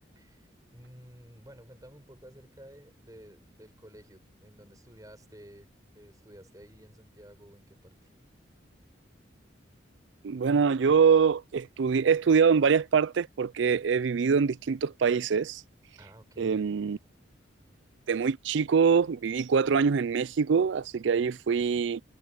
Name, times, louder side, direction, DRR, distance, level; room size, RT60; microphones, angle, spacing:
voice 1, 0.1-8.1 16.0-16.6, equal, 20° right, 4.6 m, -52 dB
voice 2, 10.2-15.6 16.4-17.0 18.1-22.0, right 6 dB, 70° right, 0.4 m, -24 dB
head